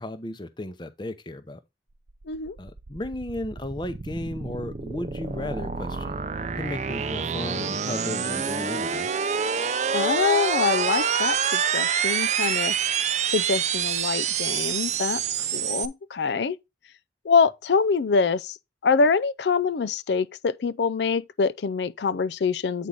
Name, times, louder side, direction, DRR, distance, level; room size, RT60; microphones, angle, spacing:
voice 1, 0.0-1.6 2.6-6.2 6.6-9.1, left 1 dB, 25° left, 0.7 m, -34 dB
sound 1, 2.1-15.9, right 7 dB, 40° right, 0.5 m, -27 dB
voice 2, 9.9-12.8 13.3-15.2 15.5-16.6 17.2-18.6 18.8-22.9, left 5 dB, 75° left, 0.4 m, -24 dB
8.4 x 4.6 x 3.8 m
head